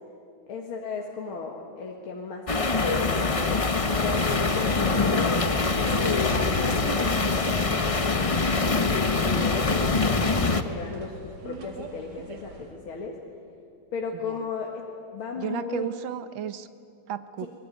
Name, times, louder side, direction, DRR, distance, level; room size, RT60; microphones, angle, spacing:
voice 1, 0.5-3.4 3.8-5.4 5.9-13.2 13.9-14.8 15.1-15.9 17.4-17.5, left 4 dB, 75° left, -1 dB, 2.7 m, -35 dB
sound 1, 2.5-10.6, left 3 dB, 50° left, 0.4 m, -24 dB
sound 2, 3.9-12.8, right 3 dB, 55° right, 2.6 m, -44 dB
voice 2, 15.4-16.7 17.1-17.5, right 10 dB, 70° right, 12 dB, 1.7 m, -33 dB
24.0 x 21.5 x 9.8 m, 2.4 s
omnidirectional pair, 2.3 m